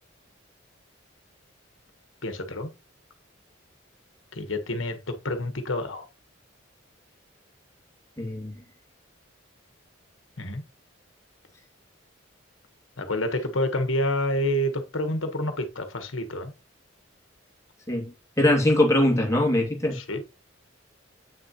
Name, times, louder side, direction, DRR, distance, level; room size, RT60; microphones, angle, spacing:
voice 1, 2.2-2.7 4.3-6.1 10.4-10.6 13.0-16.5 19.9-20.2, left 1 dB, 80° left, 1.4 m, -28 dB
voice 2, 8.2-8.6 17.9-20.0, left 1 dB, 15° left, 2.5 m, -22 dB
8.8 x 6.6 x 3.0 m
head